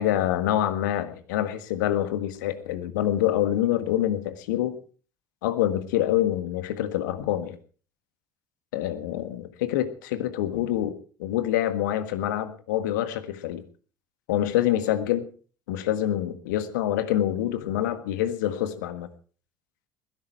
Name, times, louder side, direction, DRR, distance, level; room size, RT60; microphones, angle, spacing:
voice 1, 0.0-4.8 5.4-7.6 8.7-10.9 11.2-13.6 14.3-15.2 15.7-19.1, left 12 dB, 70° left, 11 dB, 1.6 m, -26 dB
20.5 x 11.0 x 4.7 m, 0.40 s
figure-of-eight pair, 60°, 10 cm